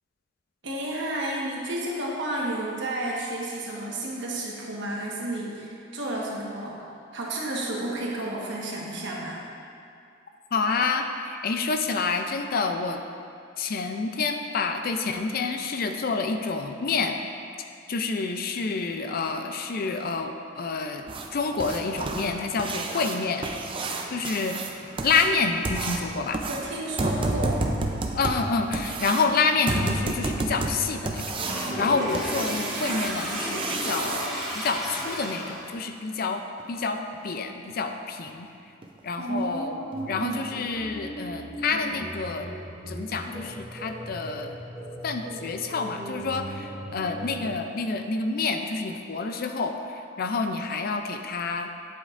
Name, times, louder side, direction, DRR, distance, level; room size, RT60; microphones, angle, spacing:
voice 1, 0.6-6.8 7.1-9.4 26.5-27.7 39.1-40.4, right 1 dB, 65° right, -3 dB, 1.3 m, -31 dB
voice 2, 10.5-13.0 13.6-17.2 17.9-23.5 24.1-24.6 25.0-26.4 28.1-36.4 36.7-38.5 39.0-42.5 42.9-44.5 45.0-49.7 50.2-51.7, left 4 dB, 50° left, 6 dB, 0.4 m, -28 dB
sound 1, 21.1-34.3 36.6-36.7 37.1-37.2 37.7-37.8 38.3-38.4 38.8-39.0 39.4-39.5 39.9-40.0, right 2 dB, 25° right, 0.5 m, -31 dB
Toilet flush, 31.4-35.7, equal, ahead, 1.8 m, -32 dB
sound 2, 39.9-47.5, equal, 15° left, 1.5 m, -39 dB
9.4 x 8.0 x 2.5 m, 2.4 s
head